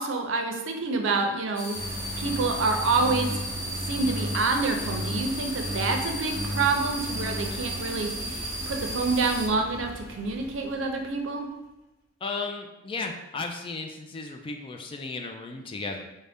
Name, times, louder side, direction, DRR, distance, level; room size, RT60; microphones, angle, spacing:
voice 1, 0.0-1.8 2.2-3.4 3.9-11.5, right 3 dB, 75° right, 3 dB, 0.5 m, -27 dB
sound 1, 1.5-9.5, equal, 10° left, 0.9 m, -36 dB
Engine, 1.7-11.2, equal, 50° left, 1.0 m, -35 dB
voice 2, 12.2-16.0, left 3 dB, 25° left, 4 dB, 0.3 m, -35 dB
3.8 x 2.1 x 3.4 m, 0.96 s
head